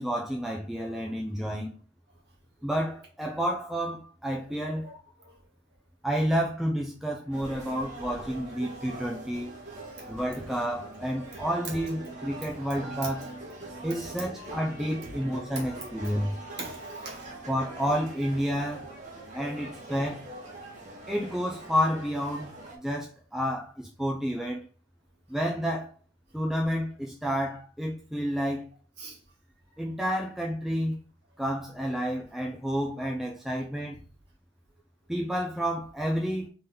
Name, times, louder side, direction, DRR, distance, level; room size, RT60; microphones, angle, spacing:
voice 1, 0.0-1.7 2.6-4.9 6.0-9.5 10.1-13.3 13.8-16.4 17.5-18.9 19.3-20.3 21.1-24.6 25.3-25.9 26.3-28.7 29.8-31.0 31.4-33.9 35.1-36.5, equal, ahead, 0.5 m, -30 dB
voice 2, 4.8-5.3 7.6-7.7 15.6-15.7 16.6-17.5 19.6-19.7 29.0-29.2, right 3 dB, 50° right, 1.7 m, -43 dB
sound 1, 7.3-22.8, right 2 dB, 35° right, 1.3 m, -43 dB
4.2 x 3.4 x 3.7 m
head